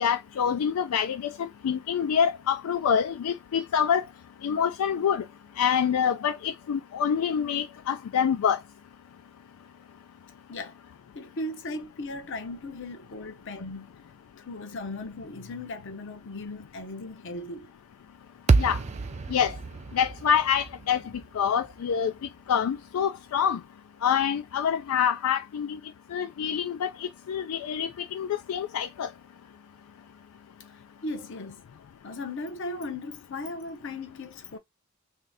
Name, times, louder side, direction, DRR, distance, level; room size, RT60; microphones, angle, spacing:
voice 1, 0.0-4.1 4.4-5.2 5.6-8.6 18.6-18.8 19.3-19.5 19.9-21.0 21.3-22.1 22.5-23.6 24.0-25.8 26.1-29.1, left 8 dB, 85° left, 0.3 m, -26 dB
voice 2, 11.1-14.0 14.5-17.7 30.7-31.6 32.0-34.6, left 2 dB, 60° left, 0.7 m, -37 dB
sound 1, 18.5-22.8, right 4 dB, 30° right, 0.4 m, -28 dB
3.1 x 2.8 x 3.5 m
head